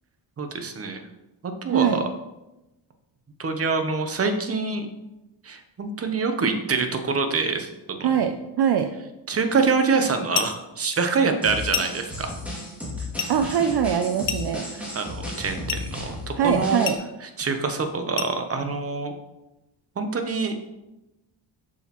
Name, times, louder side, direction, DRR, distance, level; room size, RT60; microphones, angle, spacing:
voice 1, 0.4-1.0 1.4-2.1 3.4-4.9 5.4-8.1 9.3-12.3 14.7-16.9 17.2-19.1 20.0-20.7, right 4 dB, 30° right, 6 dB, 0.8 m, -25 dB
voice 2, 1.7-2.0 8.0-8.9 13.3-14.6 16.4-17.0, right 8 dB, 60° right, 7 dB, 0.5 m, -22 dB
sound 1, 10.3-10.7 11.7-12.1 13.2-13.4 14.3-14.7 15.7-15.9 16.8-17.1 18.2-18.4, left 8 dB, 75° left, 0.7 m, -29 dB
sound 2, 11.4-17.0, left 1 dB, 5° right, 2.2 m, -34 dB
7.0 x 6.3 x 3.0 m, 0.97 s
wide cardioid pair, 135°, 46 cm